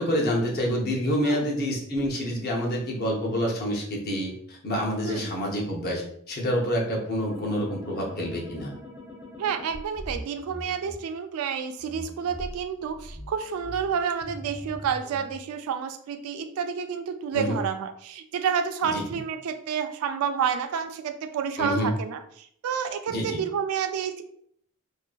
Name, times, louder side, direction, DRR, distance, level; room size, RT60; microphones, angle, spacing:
voice 1, 0.0-8.7 17.3-17.6 18.8-19.2 21.6-21.9 23.1-23.4, equal, 45° left, -1 dB, 0.7 m, -27 dB
sound 1, 7.2-10.9 11.8-15.3, equal, 5° right, 0.4 m, -42 dB
voice 2, 9.4-22.2 22.6-24.2, right 7 dB, 80° right, 12 dB, 0.3 m, -29 dB
2.6 x 2.4 x 2.2 m, 0.66 s
head